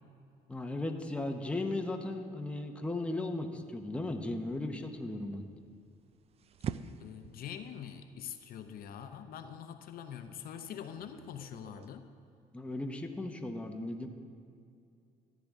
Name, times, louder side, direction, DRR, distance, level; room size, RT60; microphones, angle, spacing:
voice 1, 0.5-5.4 12.5-14.1, left 2 dB, 5° left, 4 dB, 0.8 m, -36 dB
sound 1, 4.3-11.9, right 8 dB, 35° right, 0.3 m, -47 dB
voice 2, 7.0-12.1, left 8 dB, 60° left, 7 dB, 0.6 m, -44 dB
13.5 x 9.2 x 3.6 m, 2.4 s
cardioid pair, 110°, 17 cm